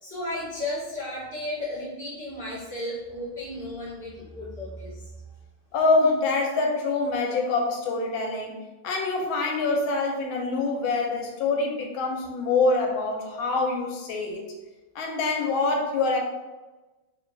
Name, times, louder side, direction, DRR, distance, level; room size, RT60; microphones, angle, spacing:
voice 1, 0.0-5.1, left 1 dB, 65° right, -12 dB, 0.3 m, -34 dB
voice 2, 5.7-8.5 8.8-14.5 14.9-16.2, left 3 dB, 80° left, 1 dB, 1.3 m, -25 dB
3.3 x 2.2 x 2.5 m, 1.2 s
omnidirectional pair, 2.3 m